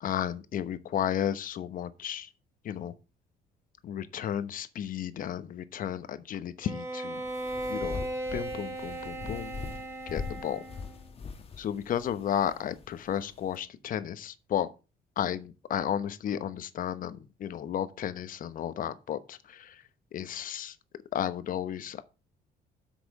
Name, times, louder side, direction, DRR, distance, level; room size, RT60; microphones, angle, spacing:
voice 1, 0.0-2.3 2.6-2.9 3.8-7.2 7.7-8.0 8.3-9.6 10.1-10.6 11.6-14.7 15.2-19.8 20.1-20.8 21.1-22.0, left 10 dB, 55° left, 1.1 m, -33 dB
Bowed string instrument, 6.6-11.0, right 1 dB, 15° right, 2.1 m, -37 dB
sound 1, 7.1-13.6, left 5 dB, 35° left, 1.4 m, -42 dB
8.4 x 6.0 x 5.4 m
cardioid pair, 110°, 17 cm